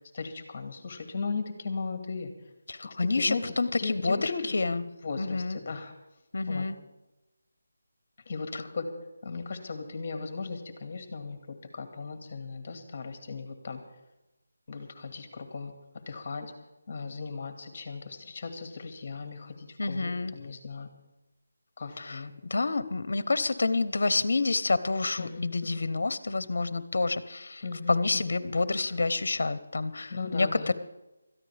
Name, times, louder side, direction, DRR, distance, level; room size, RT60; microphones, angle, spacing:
voice 1, 0.1-2.3 3.2-3.4 3.8-4.5 5.0-5.9 6.5-6.7 8.3-8.9 9.2-11.4 11.7-13.8 14.7-15.7 16.1-16.5 16.9-20.9 21.8-22.3 25.2-25.8 27.6-28.3 30.1-30.7, left 4 dB, 35° left, 6 dB, 2.0 m, -37 dB
voice 2, 2.7-4.8 5.2-5.6 6.3-6.8 8.5-8.7 19.8-20.3 22.0-30.7, left 3 dB, 65° left, 14 dB, 1.0 m, -28 dB
21.5 x 14.0 x 3.5 m, 1.0 s
figure-of-eight pair, 170°, 0 cm